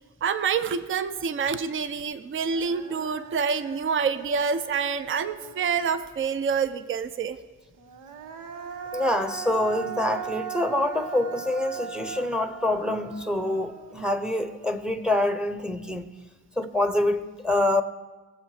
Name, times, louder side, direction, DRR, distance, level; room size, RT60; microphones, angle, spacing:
voice 1, 0.2-7.4, right 6 dB, 40° right, 0.7 m, -27 dB
Human voice, 2.0-2.1 2.4-6.1 7.8-15.0, right 7 dB, 85° right, 1.0 m, -39 dB
voice 2, 8.9-16.1 16.6-17.8, left 1 dB, 5° right, 0.8 m, -26 dB
20.0 x 7.3 x 4.9 m
cardioid pair, 90°, 30 cm